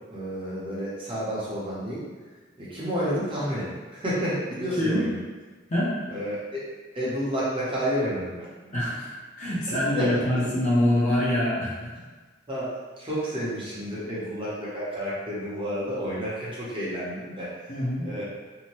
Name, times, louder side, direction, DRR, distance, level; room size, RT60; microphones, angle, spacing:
voice 1, 0.1-2.0 2.6-5.2 6.1-6.6 6.9-8.5 10.0-10.1 12.5-12.7 13.0-17.5 18.0-18.2, equal, 30° right, -8 dB, 0.8 m, -30 dB
voice 2, 8.7-11.9 17.7-18.1, left 1 dB, 40° left, -7 dB, 0.7 m, -25 dB
2.7 x 2.2 x 3.0 m, 1.3 s
head